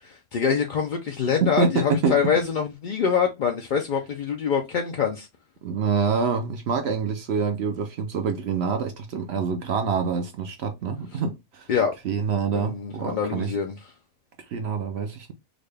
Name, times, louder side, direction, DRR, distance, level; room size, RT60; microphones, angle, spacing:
voice 1, 0.0-5.3 11.7-12.0 12.5-13.7, left 6 dB, 65° left, 0.4 m, -25 dB
voice 2, 1.4-2.2 5.6-11.7 12.0-13.5 14.5-15.3, right 5 dB, 65° right, 0.7 m, -26 dB
3.8 x 2.2 x 3.3 m
omnidirectional pair, 1.4 m